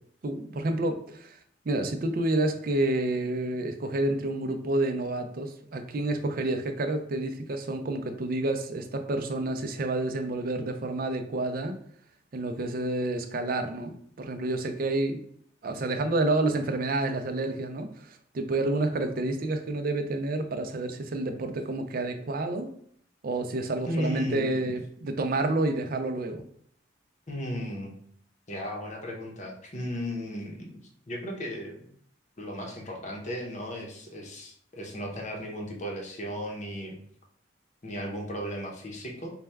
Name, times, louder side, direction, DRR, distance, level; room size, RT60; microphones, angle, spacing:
voice 1, 0.2-1.4 1.7-11.8 12.3-15.2 15.6-22.7 23.2-26.4, right 2 dB, 50° right, 7 dB, 0.4 m, -29 dB
voice 2, 23.9-24.7 27.3-27.9 28.5-30.7 31.1-31.9 32.4-37.0 37.8-39.3, equal, 40° left, 0 dB, 0.7 m, -35 dB
4.2 x 2.2 x 3.4 m, 0.63 s
head